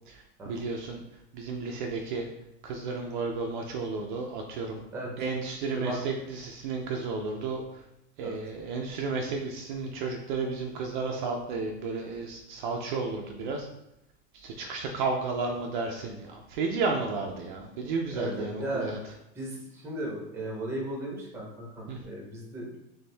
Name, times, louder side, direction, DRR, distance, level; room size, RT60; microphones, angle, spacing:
voice 1, 0.1-1.0 1.3-2.3 2.6-4.8 5.2-7.8 8.2-13.7 14.3-19.0 21.9-22.0, right 4 dB, 45° right, 1 dB, 0.5 m, -32 dB
voice 2, 4.9-5.2 5.7-6.0 8.2-8.4 18.1-22.8, right 1 dB, 5° right, -1 dB, 0.7 m, -36 dB
4.3 x 3.5 x 3.3 m, 0.84 s
supercardioid pair, 175°, 34 cm